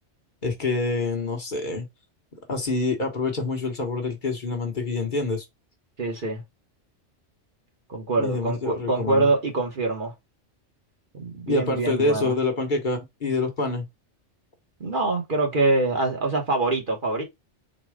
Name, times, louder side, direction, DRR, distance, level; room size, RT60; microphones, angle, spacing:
voice 1, 0.4-1.9 2.5-5.4 8.2-9.3 11.5-13.9, left 3 dB, 45° left, 1.1 m, -26 dB
voice 2, 6.0-6.4 7.9-10.1 11.1-12.3 14.8-17.2, right 2 dB, 45° right, 1.2 m, -24 dB
4.1 x 2.2 x 4.6 m
omnidirectional pair, 1.2 m